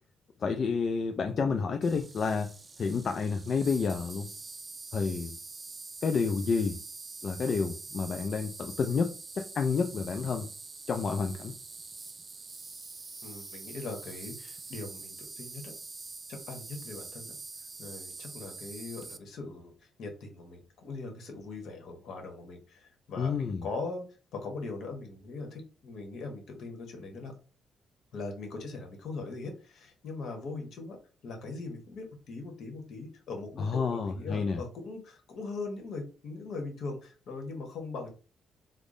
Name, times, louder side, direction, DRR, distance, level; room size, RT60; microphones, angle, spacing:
voice 1, 0.4-2.5 2.8-4.3 4.9-5.4 6.0-6.8 7.2-10.5 10.9-11.5 23.2-23.6 33.6-34.6, left 5 dB, 50° left, 0.4 m, -30 dB
Insect, 1.8-19.2, right 3 dB, 30° right, 0.4 m, -45 dB
voice 2, 13.2-15.7 16.3-17.3 17.8-24.1 24.3-27.3 28.1-31.0 31.2-38.1, left 3 dB, 70° left, 1.1 m, -40 dB
3.6 x 2.0 x 3.7 m
cardioid pair, 90°, 0 cm